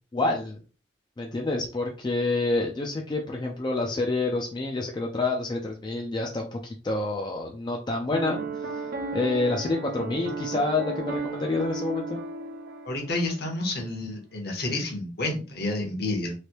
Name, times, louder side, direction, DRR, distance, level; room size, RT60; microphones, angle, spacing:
voice 1, 0.1-0.6 1.2-12.2, left 2 dB, 25° left, 1 dB, 0.4 m, -28 dB
Piano, 8.1-13.4, right 3 dB, 50° right, 0.4 m, -34 dB
voice 2, 12.8-16.3, left 2 dB, 55° left, 2 dB, 1.0 m, -30 dB
3.2 x 2.6 x 2.9 m, 0.35 s
head